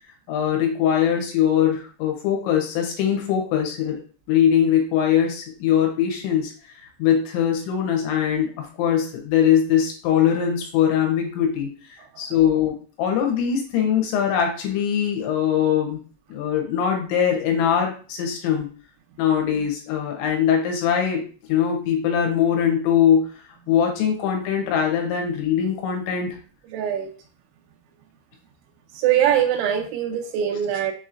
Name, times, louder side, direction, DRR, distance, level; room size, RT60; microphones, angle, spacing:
voice 1, 0.3-4.0 4.3-16.0 16.3-18.7 19.2-26.4, left 9 dB, 75° left, 2 dB, 3.1 m, -22 dB
voice 2, 26.7-27.1 28.9-30.9, right 10 dB, 85° right, 4 dB, 2.8 m, -22 dB
7.1 x 3.0 x 2.5 m, 0.39 s
omnidirectional pair, 5.6 m